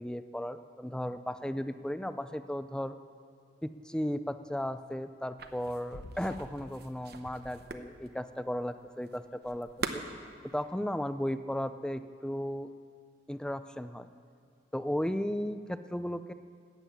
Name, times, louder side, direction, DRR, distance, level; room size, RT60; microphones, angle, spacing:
voice 1, 0.0-3.0 3.6-10.0 10.5-12.7 13.3-14.1 14.7-16.3, equal, 5° left, 11 dB, 0.4 m, -35 dB
sound 1, 5.4-10.6, right 4 dB, 60° right, 0.9 m, -43 dB
sound 2, 5.9-6.6 7.2-8.1, left 2 dB, 65° left, 0.9 m, -49 dB
13.5 x 9.1 x 8.5 m, 2.3 s
head